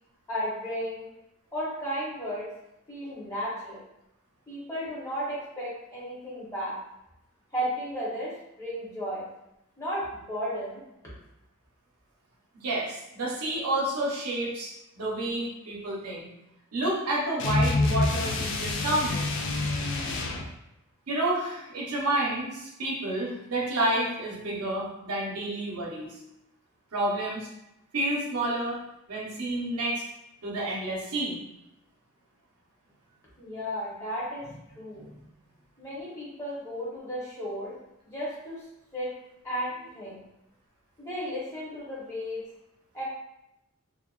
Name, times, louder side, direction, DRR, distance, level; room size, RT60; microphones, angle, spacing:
voice 1, 0.3-1.1 1.5-2.5 2.9-3.8 4.5-6.7 7.5-9.3 9.8-10.8 33.4-34.5 34.8-35.1 35.8-37.7 38.0-38.6 38.9-39.1 39.4-40.2 41.0-42.4 42.9-43.0, equal, 15° left, -8 dB, 0.7 m, -34 dB
voice 2, 12.5-14.7 15.0-16.3 16.7-19.3 21.1-26.1 26.9-27.5 27.9-28.8 29.1-30.0 30.4-31.4 34.9-35.2, right 1 dB, 80° right, -4 dB, 0.7 m, -29 dB
sound 1, 17.4-20.5, left 2 dB, 55° left, 0.3 m, -27 dB
2.5 x 2.2 x 2.3 m, 0.88 s
head